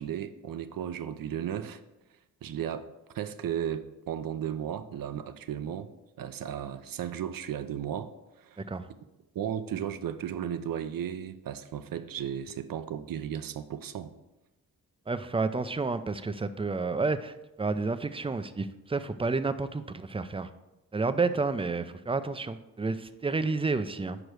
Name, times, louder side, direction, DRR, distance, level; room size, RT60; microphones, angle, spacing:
voice 1, 0.0-1.8 2.4-2.9 3.1-5.9 6.2-8.6 9.3-14.1, right 9 dB, 65° right, 12 dB, 0.6 m, -35 dB
voice 2, 15.1-17.3 17.6-20.5 20.9-24.2, right 3 dB, 15° right, 11 dB, 0.4 m, -30 dB
5.3 x 5.0 x 6.1 m, 1.0 s
cardioid pair, 60°, 37 cm